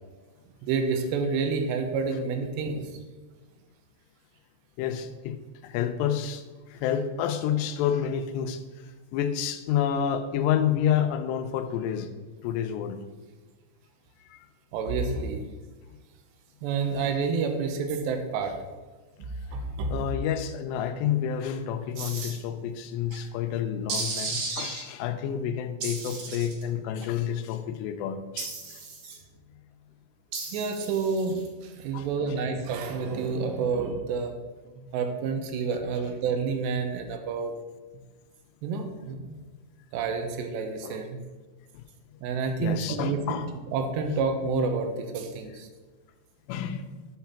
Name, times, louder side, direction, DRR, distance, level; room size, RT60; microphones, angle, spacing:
voice 1, 0.6-3.0 14.7-15.4 16.6-18.6 19.5-19.9 23.1-23.2 29.1-29.2 30.5-34.4 34.7-37.5 38.6-39.4 39.9-41.2 42.2-45.7, right 5 dB, 85° right, 6 dB, 3.1 m, -29 dB
voice 2, 4.8-5.4 5.6-8.6 9.1-12.1 12.4-13.0 14.2-14.5 19.9-28.8 31.9-32.4 36.0-36.1 40.8-41.0 41.7-41.8 42.6-43.5 44.1-44.2 45.5-45.6 46.5-46.9, left 9 dB, 85° left, 8 dB, 2.8 m, -29 dB
sound 1, 22.0-22.3 23.9-24.8 25.8-26.6 28.4-29.2 30.3-31.5, right 4 dB, 60° right, 2.3 m, -34 dB
8.3 x 5.8 x 5.7 m, 1.3 s
omnidirectional pair, 4.9 m